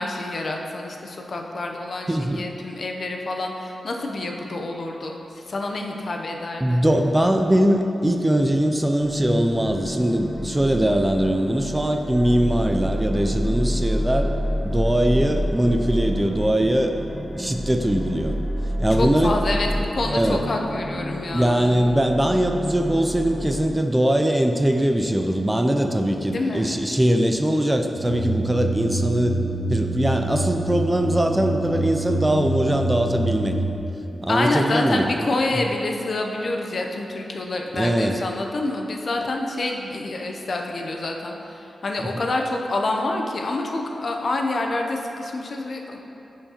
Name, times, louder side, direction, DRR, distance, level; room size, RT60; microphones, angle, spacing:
voice 1, 0.0-6.8 18.9-21.6 26.2-26.7 34.3-46.0, left 2 dB, 55° left, 2 dB, 0.6 m, -27 dB
voice 2, 2.1-2.4 6.6-14.3 14.6-16.9 17.4-18.4 18.8-19.3 20.1-20.4 21.3-29.4 29.7-33.6 34.2-35.1 37.7-38.2, right 1 dB, 15° right, 4 dB, 0.4 m, -21 dB
sound 1, 9.0-23.6, equal, 15° left, 1.1 m, -28 dB
sound 2, 28.0-33.8, right 2 dB, 30° right, 0.9 m, -27 dB
10.0 x 4.6 x 2.9 m, 3.0 s
wide cardioid pair, 100°, 0 cm